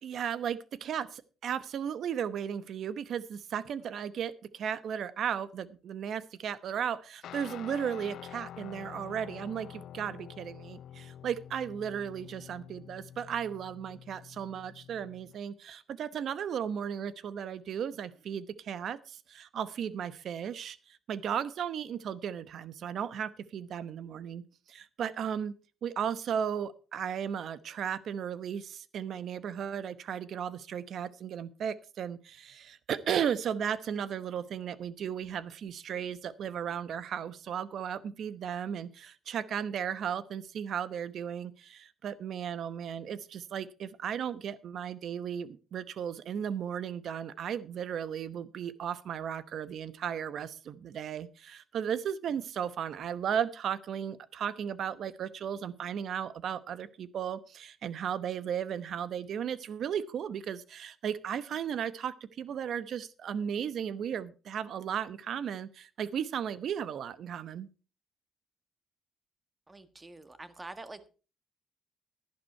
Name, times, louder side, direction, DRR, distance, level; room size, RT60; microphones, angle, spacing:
voice 1, 0.0-24.4 24.7-25.5 25.8-67.7, right 8 dB, 65° right, 16 dB, 0.9 m, -35 dB
Guitar, 7.2-15.4, left 10 dB, 75° left, 0.5 m, -48 dB
voice 2, 69.7-71.1, right 2 dB, 20° right, 11 dB, 1.5 m, -46 dB
12.0 x 11.0 x 4.4 m, 0.34 s
cardioid pair, 90°, 0 cm